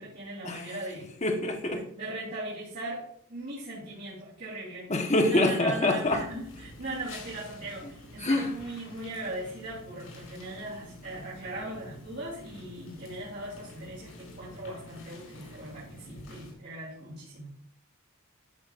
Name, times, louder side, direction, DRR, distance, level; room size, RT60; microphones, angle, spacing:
voice 1, 0.0-1.1 1.9-17.5, right 1 dB, 55° right, -7 dB, 3.2 m, -39 dB
voice 2, 1.2-1.8 4.9-6.2 8.2-8.5, left 2 dB, 35° left, 3 dB, 1.3 m, -25 dB
sound 1, 6.0-16.5, left 1 dB, 80° left, 4.3 m, -48 dB
12.5 x 7.3 x 2.5 m, 0.63 s
head